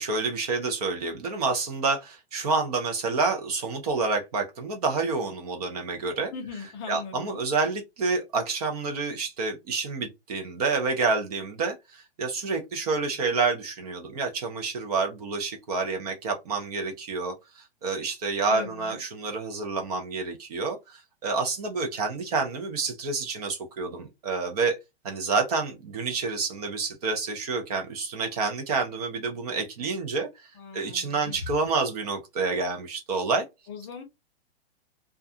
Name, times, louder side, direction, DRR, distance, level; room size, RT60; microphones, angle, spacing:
voice 1, 0.0-6.3 6.9-24.8 25.0-33.4, right 4 dB, 40° right, 0.6 m, -28 dB
voice 2, 6.3-7.4 18.5-19.0 30.6-31.5 33.7-34.0, left 5 dB, 25° left, 0.7 m, -39 dB
2.4 x 2.2 x 2.6 m
hypercardioid pair, 160°, 32 cm